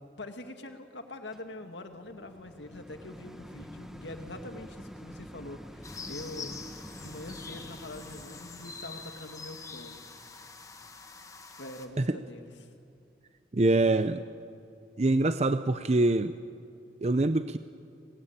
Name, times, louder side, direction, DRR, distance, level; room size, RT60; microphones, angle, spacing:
voice 1, 0.2-6.6 6.9-10.0 11.6-12.7, left 2 dB, 85° left, 6 dB, 2.2 m, -44 dB
sound 1, 1.3-12.6 13.2-13.3, equal, 5° right, 1.0 m, -49 dB
sound 2, 5.8-11.9, left 4 dB, 20° left, 1.7 m, -45 dB
voice 2, 13.5-14.2 15.0-16.3 17.0-17.6, right 2 dB, 35° right, 11 dB, 0.6 m, -24 dB
26.0 x 20.0 x 8.9 m, 2.6 s
head